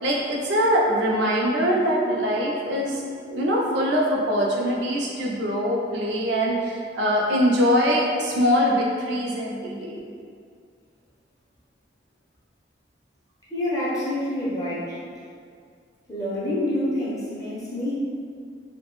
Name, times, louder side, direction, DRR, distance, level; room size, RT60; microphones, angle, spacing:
voice 1, 0.0-10.0, equal, 75° right, -3 dB, 0.4 m, -23 dB
voice 2, 13.5-15.0 16.1-17.9, left 1 dB, 20° left, -10 dB, 0.5 m, -27 dB
2.3 x 2.1 x 2.9 m, 2.2 s
head